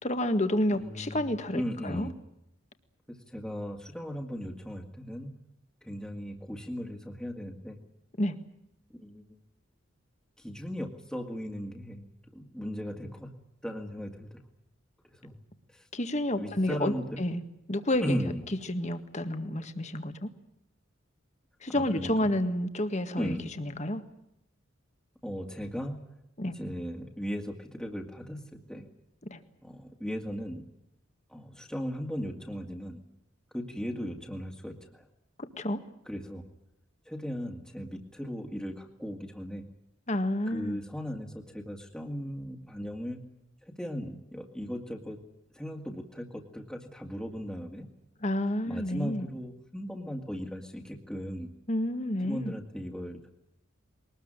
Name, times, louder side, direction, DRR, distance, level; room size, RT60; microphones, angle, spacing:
voice 1, 0.0-2.1 8.2-8.4 15.9-17.4 17.7-18.2 18.7-20.3 21.6-24.0 26.4-26.5 29.3-29.4 35.4-35.8 40.1-40.8 48.2-49.3 51.7-52.5, left 1 dB, 35° left, 9 dB, 1.8 m, -30 dB
voice 2, 0.7-1.3 1.5-2.1 3.1-5.3 5.8-7.8 8.9-9.4 10.4-12.1 12.3-13.3 13.6-14.4 15.0-15.4 15.7-15.9 16.4-17.2 18.0-18.4 21.7-22.3 23.2-23.4 25.2-26.1 26.5-28.9 29.6-30.6 31.3-33.0 33.5-35.1 36.1-36.4 37.1-39.7 40.5-43.2 43.6-45.2 45.5-47.9 48.6-51.5 52.2-53.3, equal, 5° left, 1 dB, 2.1 m, -37 dB
22.5 x 19.5 x 8.9 m, 0.83 s
head